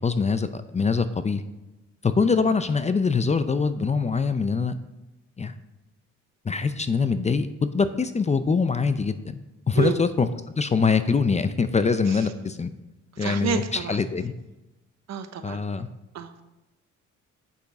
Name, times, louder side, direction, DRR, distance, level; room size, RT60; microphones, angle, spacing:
voice 1, 0.0-1.4 2.0-4.8 5.4-5.5 6.4-9.4 9.7-10.3 10.6-12.7 13.2-14.3 15.4-15.9, left 5 dB, 25° left, 11 dB, 0.5 m, -23 dB
voice 2, 13.1-14.0 15.1-15.6 16.1-16.4, right 7 dB, 60° right, 9 dB, 0.9 m, -29 dB
8.3 x 6.6 x 4.8 m, 1.0 s
cardioid pair, 90°, 30 cm